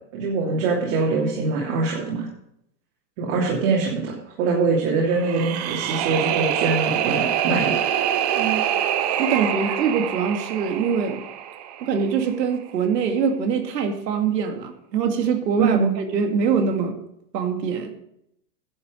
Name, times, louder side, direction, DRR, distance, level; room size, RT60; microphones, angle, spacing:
voice 1, 0.1-2.3 3.2-7.7 15.6-15.9, right 4 dB, 55° right, -4 dB, 3.1 m, -23 dB
sound 1, 5.1-12.2, right 10 dB, 25° right, 0.5 m, -25 dB
voice 2, 8.4-8.7 9.2-11.2 11.8-17.0 17.3-17.9, right 6 dB, 85° right, 5 dB, 2.3 m, -23 dB
11.0 x 8.7 x 5.1 m, 0.77 s
supercardioid pair, 160°, 48 cm